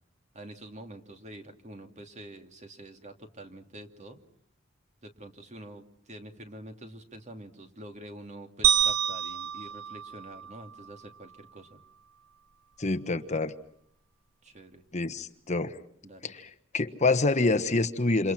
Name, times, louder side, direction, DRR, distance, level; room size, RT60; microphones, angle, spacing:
voice 1, 0.3-4.2 5.0-11.8 14.4-14.8 16.0-16.3, right 1 dB, 35° right, 5 dB, 2.6 m, -46 dB
sound 1, 8.6-11.0, right 10 dB, 85° right, 1.6 m, -28 dB
voice 2, 12.8-13.5 14.9-15.8 16.2-18.3, left 3 dB, 35° left, 9 dB, 1.2 m, -27 dB
29.0 x 28.0 x 5.9 m, 0.69 s
head